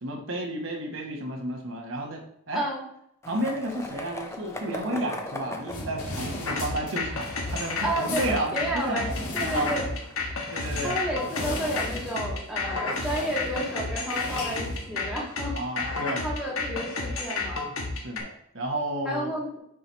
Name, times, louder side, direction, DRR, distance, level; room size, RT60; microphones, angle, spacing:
voice 1, 0.0-2.6 3.3-9.0 9.5-9.7 10.5-11.0 15.5-16.3 17.9-19.3, right 1 dB, 60° right, 1 dB, 1.0 m, -32 dB
voice 2, 2.5-2.8 7.8-9.9 10.3-10.5 10.8-15.6 16.2-17.6 19.1-19.6, right 1 dB, 5° right, -4 dB, 1.8 m, -31 dB
Skateboard, 3.2-11.2, left 2 dB, 15° left, 0.6 m, -41 dB
sound 1, 5.7-15.5, left 2 dB, 85° left, 1.7 m, -38 dB
sound 2, 6.4-18.2, left 3 dB, 70° left, 1.4 m, -31 dB
9.4 x 4.9 x 3.0 m, 0.73 s
head